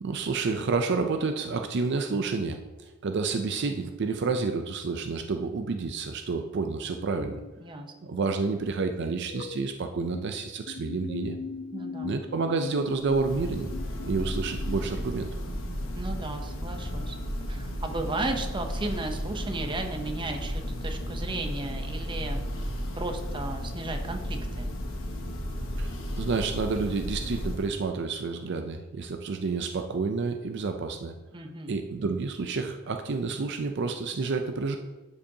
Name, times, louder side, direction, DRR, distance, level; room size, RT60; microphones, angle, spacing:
voice 1, 0.0-7.4 8.0-11.4 12.0-13.7 14.1-15.3 25.8-31.1 31.7-34.8, right 4 dB, 60° right, 6 dB, 0.5 m, -29 dB
sound 1, 7.0-7.5 9.3-10.3 10.7-14.8, left 5 dB, 45° left, 0.3 m, -40 dB
voice 2, 7.6-8.2 11.7-12.2 15.9-17.2 17.5-24.7 31.3-31.8, right 2 dB, 25° right, 5 dB, 0.7 m, -35 dB
Church bell, 12.9-27.9, equal, 90° left, 1.1 m, -34 dB
11.5 x 5.2 x 2.8 m, 1.1 s
head